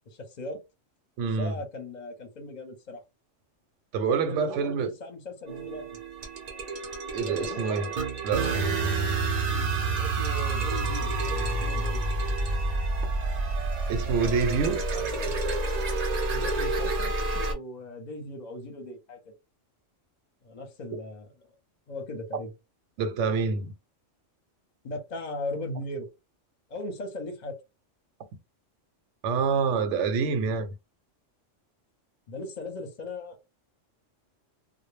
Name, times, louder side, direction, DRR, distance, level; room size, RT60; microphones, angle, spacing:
voice 1, 0.1-0.6 1.4-3.0 4.2-5.8 7.2-7.6 9.3-12.1 14.9-15.5 16.3-19.2 20.4-21.3 21.9-22.5 24.8-26.1 26.7-27.6 32.3-33.4, left 2 dB, 40° left, 0.7 m, -38 dB
voice 2, 1.2-1.5 3.9-4.9 7.1-7.9 8.2-8.5 13.9-14.8 23.0-23.7 29.2-30.7, right 5 dB, 75° right, 0.9 m, -26 dB
sound 1, 5.5-17.5, right 3 dB, 50° right, 0.5 m, -29 dB
2.1 x 2.1 x 3.1 m
omnidirectional pair, 1.3 m